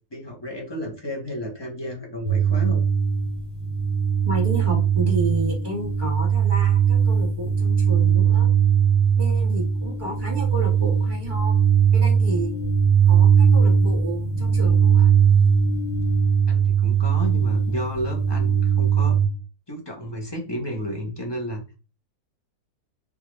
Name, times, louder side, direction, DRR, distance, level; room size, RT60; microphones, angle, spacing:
voice 1, 0.1-2.8 16.5-19.2 19.7-21.7, equal, 25° left, 0 dB, 0.6 m, -32 dB
sound 1, 2.2-19.3, right 7 dB, 50° left, 1.2 m, -20 dB
voice 2, 4.2-8.5 9.2-11.6 11.9-12.7 13.1-15.1, right 2 dB, 35° right, -1 dB, 1.4 m, -31 dB
3.9 x 2.3 x 3.1 m, 0.33 s
omnidirectional pair, 1.6 m